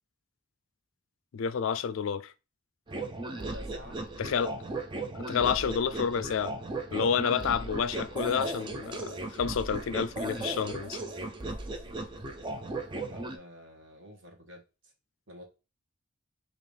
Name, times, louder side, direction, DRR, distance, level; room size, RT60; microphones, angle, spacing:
voice 1, 1.3-2.3 4.2-4.5 5.1-6.6 6.9-11.0, left 7 dB, 75° left, 0.4 m, -29 dB
sound 1, 2.9-13.4, right 2 dB, 20° right, 0.4 m, -36 dB
voice 2, 3.2-4.0 13.0-14.9 15.3-15.4, left 1 dB, 65° right, 1.3 m, -49 dB
5.3 x 2.9 x 3.3 m
head